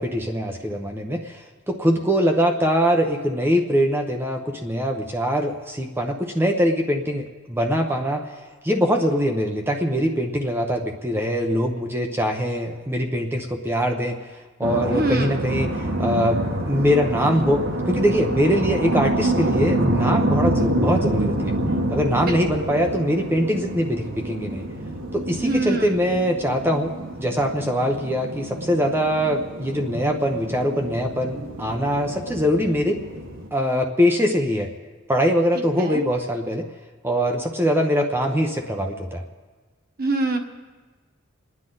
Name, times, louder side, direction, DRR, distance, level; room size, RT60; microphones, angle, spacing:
voice 1, 0.0-8.4 8.6-14.2 14.6-21.5 21.9-24.7 25.1-26.9 27.2-33.0 33.5-34.7 35.1-36.6 37.0-39.2, equal, 10° right, 2 dB, 0.8 m, -22 dB
sound 1, 14.6-33.5, right 1 dB, 70° right, 1.4 m, -27 dB
voice 2, 14.9-15.4 22.2-22.3 25.4-25.9 35.8-36.0 40.0-40.4, right 2 dB, 45° right, 4 dB, 1.4 m, -24 dB
29.5 x 9.9 x 3.9 m, 1.4 s
head